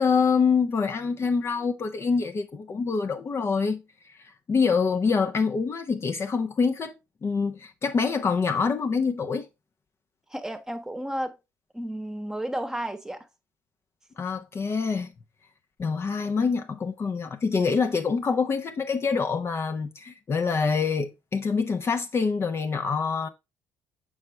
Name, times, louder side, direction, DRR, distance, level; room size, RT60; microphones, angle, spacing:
voice 1, 0.0-3.8 4.5-7.0 7.2-9.5 14.2-15.1 15.8-23.3, left 5 dB, 40° left, 0.7 m, -25 dB
voice 2, 10.3-11.4 11.7-13.3, right 1 dB, 10° right, 1.1 m, -32 dB
6.6 x 4.8 x 3.3 m
hypercardioid pair, 60°, 7 cm